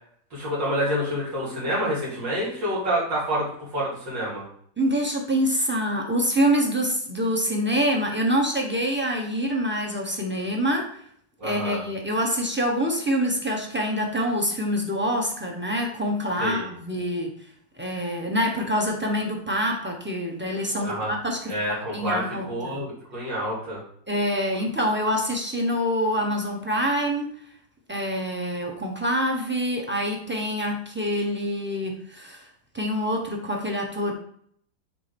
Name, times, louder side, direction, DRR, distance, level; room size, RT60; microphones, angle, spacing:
voice 1, 0.3-4.4 11.4-11.8 16.4-16.7 20.8-21.1 21.5-23.8, equal, 85° right, -8 dB, 3.2 m, -28 dB
voice 2, 4.8-10.9 11.4-17.3 17.8-21.4 21.7-22.8 24.1-27.3 27.9-32.5 32.7-34.1, equal, 10° right, 0 dB, 0.7 m, -26 dB
7.4 x 2.9 x 5.3 m, 0.64 s
omnidirectional pair, 1.9 m